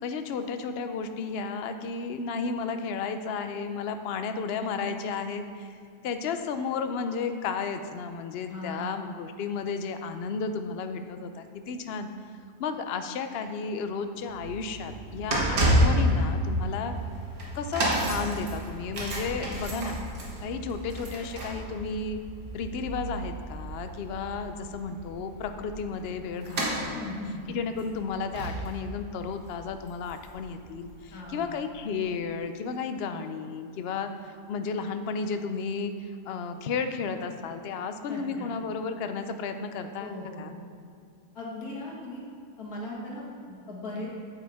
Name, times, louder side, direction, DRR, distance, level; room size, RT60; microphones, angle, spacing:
voice 1, 0.0-5.8 6.0-12.1 12.6-17.0 17.5-20.0 20.4-22.2 22.5-27.1 27.5-40.5, left 5 dB, 60° left, 8 dB, 0.7 m, -33 dB
voice 2, 8.5-9.0 26.9-27.4 31.1-31.5 38.1-38.5 40.0-40.5 41.4-42.2 42.6-44.1, left 1 dB, 80° left, -3 dB, 2.2 m, -38 dB
sound 1, 14.2-30.6 30.8-31.1 31.9-32.0, right 1 dB, 75° right, 1.9 m, -30 dB
9.0 x 8.5 x 3.5 m, 2.4 s
omnidirectional pair, 1.6 m